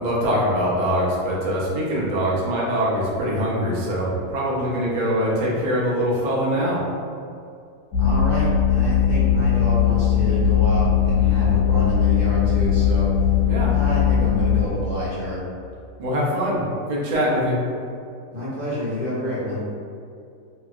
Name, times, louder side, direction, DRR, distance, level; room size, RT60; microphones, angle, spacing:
voice 1, 0.0-6.8 13.5-13.7 16.0-16.6 16.9-17.6, equal, 90° right, -5 dB, 0.4 m, -23 dB
sound 1, 7.9-14.6, left 8 dB, 85° left, 1.2 m, -19 dB
voice 2, 8.0-13.1 13.7-15.4 18.3-19.6, left 1 dB, 40° right, -9 dB, 0.9 m, -28 dB
3.0 x 2.8 x 2.4 m, 2.4 s
omnidirectional pair, 1.7 m